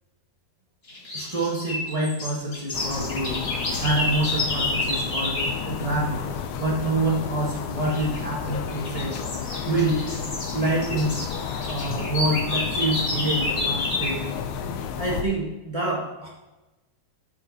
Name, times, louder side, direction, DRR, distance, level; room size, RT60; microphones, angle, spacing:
sound 1, 0.9-5.6 7.8-8.2 8.7-14.2, left 2 dB, 25° left, 1.5 m, -30 dB
voice 1, 1.1-3.4 3.8-5.4 5.6-6.2 6.6-9.1 9.6-10.0 10.5-11.2 11.7-14.2 15.0-16.3, right 2 dB, 55° right, -5 dB, 0.4 m, -26 dB
sound 2, 2.7-15.2, left 7 dB, 85° left, 2.1 m, -32 dB
13.0 x 4.7 x 4.1 m, 1.1 s
omnidirectional pair, 3.3 m